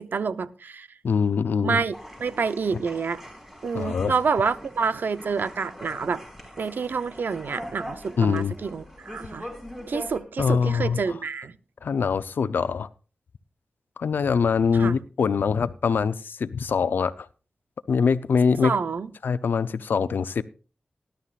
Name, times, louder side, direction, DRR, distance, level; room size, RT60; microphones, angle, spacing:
voice 1, 0.0-0.9 1.6-1.9 2.2-3.2 3.6-6.2 6.6-9.5 9.9-11.5 14.8-15.0 18.6-19.1, right 5 dB, 75° right, 0.7 m, -28 dB
voice 2, 1.0-1.8 3.7-4.1 8.2-8.5 10.4-11.0 11.8-12.9 14.0-17.3 17.9-18.7 19.2-20.4, left 6 dB, 90° left, 0.6 m, -23 dB
sound 1, 1.9-10.2, equal, 10° right, 5.1 m, -42 dB
19.0 x 11.5 x 2.5 m
wide cardioid pair, 70°, 3 cm